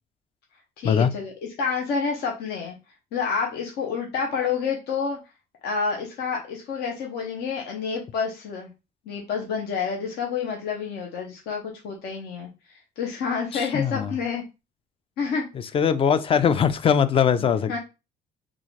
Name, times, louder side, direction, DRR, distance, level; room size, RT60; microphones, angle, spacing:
voice 1, 0.8-1.3 1.6-2.8 3.1-5.2 5.6-8.7 9.1-14.4 15.2-15.5 17.3-17.8, left 5 dB, 75° left, 0.9 m, -29 dB
voice 2, 13.5-14.1 15.7-17.8, left 7 dB, 35° left, 0.4 m, -21 dB
3.7 x 2.5 x 3.2 m
cardioid pair, 110°, 17 cm